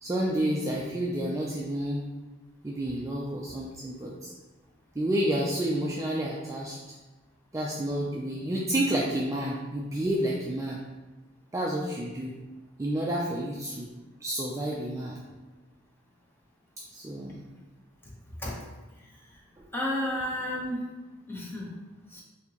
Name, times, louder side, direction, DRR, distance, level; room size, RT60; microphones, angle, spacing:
voice 1, 0.0-2.0 2.6-4.3 5.0-6.8 7.5-10.8 11.5-12.3 12.8-13.9 14.2-15.2 16.9-17.4, right 1 dB, 15° right, -4 dB, 0.3 m, -30 dB
voice 2, 19.7-20.8 21.3-21.7 22.1-22.2, left 1 dB, 10° left, -4 dB, 0.8 m, -31 dB
4.3 x 2.8 x 2.9 m, 1.2 s
head